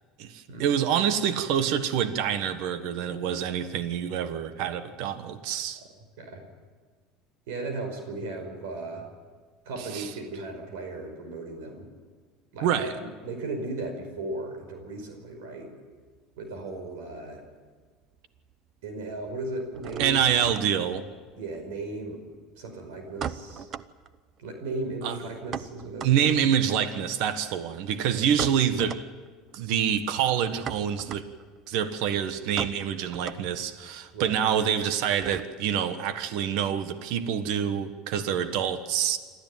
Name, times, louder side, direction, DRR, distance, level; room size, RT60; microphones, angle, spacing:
voice 1, 0.2-5.8 9.9-10.1 12.6-12.9 20.0-21.1 25.0-25.2 26.0-29.0 29.5-31.3 31.7-39.2, right 8 dB, 65° right, 10 dB, 1.5 m, -26 dB
voice 2, 7.5-9.1 9.7-11.9 12.5-15.7 16.4-17.4 18.8-20.3 21.4-22.2 22.5-23.7 24.4-26.6 28.1-28.2 34.1-34.4, right 2 dB, 90° right, 5 dB, 5.2 m, -36 dB
Dead bolt locking and unlocking, 15.9-17.6 17.8-18.5 18.8-35.8, right 8 dB, 35° right, 0.7 m, -41 dB
27.0 x 13.5 x 9.2 m, 1.5 s
cardioid pair, 145°, 0 cm